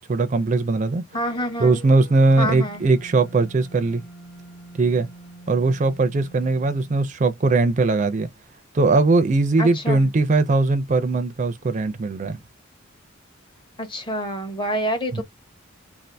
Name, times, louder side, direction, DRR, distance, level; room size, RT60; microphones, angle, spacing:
voice 1, 0.1-1.0 1.6-4.0 4.8-5.1 5.5-8.3 8.7-12.4 15.1-15.2, right 3 dB, 35° right, 0.4 m, -20 dB
sound 1, 1.1-7.2, equal, 60° left, 1.2 m, -44 dB
voice 2, 1.1-1.8 2.4-2.8 9.6-10.1 13.8-15.2, equal, 25° left, 0.8 m, -27 dB
2.6 x 2.4 x 3.3 m
head